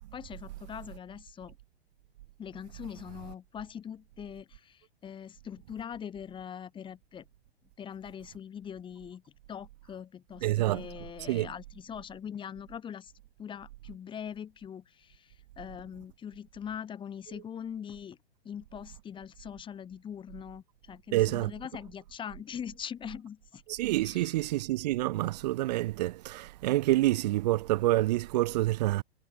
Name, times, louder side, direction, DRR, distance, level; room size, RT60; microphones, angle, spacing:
voice 1, 0.1-1.5 2.4-7.3 7.8-9.2 9.5-13.1 13.4-18.2 18.4-23.6 24.0-24.3, left 8 dB, 15° left, 1.3 m, -42 dB
voice 2, 10.4-10.9 11.3-11.5 21.1-21.5 23.7-29.0, right 17 dB, 40° right, 0.5 m, -27 dB
figure-of-eight pair, 110°, 32 cm